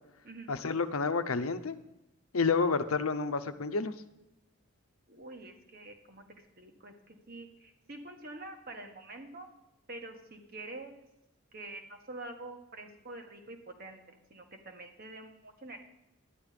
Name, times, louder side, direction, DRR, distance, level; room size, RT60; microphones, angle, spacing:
voice 1, 0.5-1.8 2.3-4.0, left 4 dB, 85° left, 9 dB, 0.8 m, -29 dB
voice 2, 5.1-6.2 6.6-9.5 9.9-11.1 11.5-15.8, right 2 dB, 45° right, 4 dB, 1.6 m, -46 dB
11.5 x 10.0 x 5.1 m, 0.92 s
head